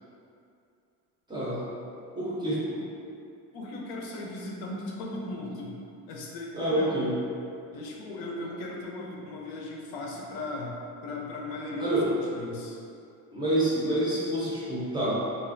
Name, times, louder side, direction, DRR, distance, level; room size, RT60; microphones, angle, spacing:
voice 1, 1.3-1.6 2.2-2.6 6.5-7.1 11.8-12.0 13.3-15.2, right 1 dB, 15° right, -9 dB, 0.5 m, -27 dB
voice 2, 3.5-5.7 6.1-7.1 7.7-10.8 11.0-12.8, left 2 dB, 75° left, -1 dB, 0.6 m, -37 dB
3.2 x 2.4 x 2.5 m, 2.5 s
cardioid pair, 165°, 36 cm